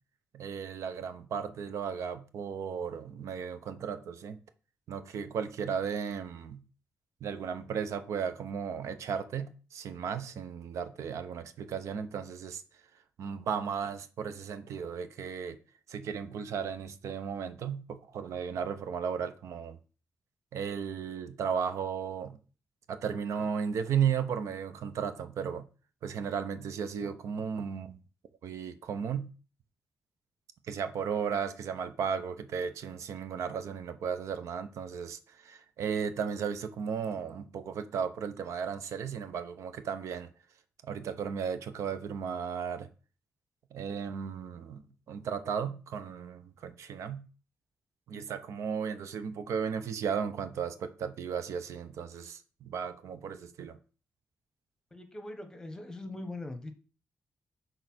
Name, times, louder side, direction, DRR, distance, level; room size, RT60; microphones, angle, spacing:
voice 1, 0.3-4.4 4.9-6.6 7.2-12.6 13.2-15.6 15.9-19.8 20.5-22.4 22.9-25.6 26.0-28.0 28.4-29.3 30.7-40.3 40.8-42.9 43.7-47.2 48.1-53.8, right 7 dB, 90° right, 0.8 m, -35 dB
voice 2, 54.9-56.7, left 2 dB, 10° left, 1.0 m, -41 dB
6.5 x 3.9 x 6.0 m
wide cardioid pair, 170°, 5 cm